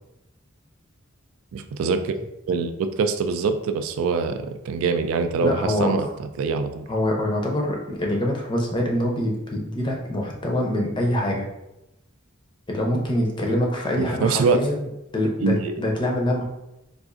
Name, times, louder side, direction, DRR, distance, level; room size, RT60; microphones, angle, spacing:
voice 1, 1.5-2.1 2.5-6.9 14.0-14.6 15.4-15.7, right 4 dB, 90° right, 8 dB, 0.3 m, -24 dB
voice 2, 5.4-5.9 6.9-11.5 12.7-14.8 15.1-16.4, left 1 dB, 25° left, 0 dB, 0.5 m, -24 dB
3.8 x 2.5 x 2.4 m, 0.90 s
head